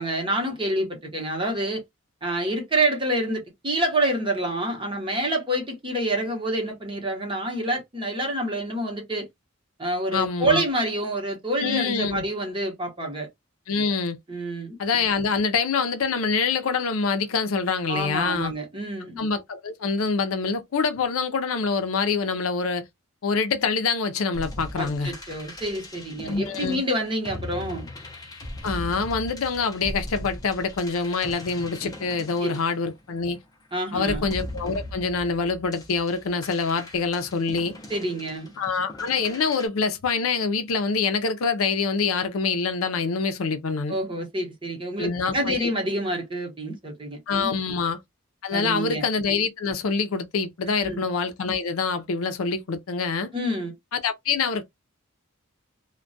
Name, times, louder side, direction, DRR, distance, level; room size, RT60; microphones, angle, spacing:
voice 1, 0.0-1.8 2.2-9.3 9.8-13.3 14.3-14.8 17.9-19.2 24.8-27.9 32.4-32.6 33.7-34.2 37.9-38.5 43.9-47.6 48.5-49.1 50.7-51.0 53.3-53.7, right 1 dB, 25° right, 0.8 m, -27 dB
voice 2, 10.1-10.6 11.6-12.2 13.7-14.2 14.8-18.5 19.2-22.8 23.2-25.1 26.2-26.8 28.6-33.4 33.9-37.7 38.6-44.0 45.0-45.7 47.3-48.0 48.4-53.3 53.9-54.6, left 5 dB, 75° left, 0.5 m, -25 dB
sound 1, 24.3-33.4 34.0-39.7, left 1 dB, 15° left, 0.5 m, -39 dB
2.2 x 2.2 x 2.5 m
head